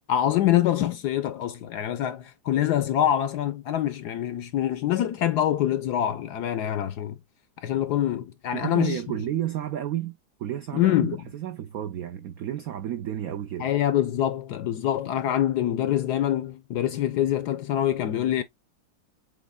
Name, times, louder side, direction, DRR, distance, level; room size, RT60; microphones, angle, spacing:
voice 1, 0.1-7.1 7.6-9.0 10.7-11.2 13.6-18.4, left 11 dB, 75° left, 1.0 m, -25 dB
voice 2, 8.5-13.7, right 11 dB, 90° right, 0.7 m, -32 dB
7.3 x 3.1 x 2.2 m
omnidirectional pair, 2.1 m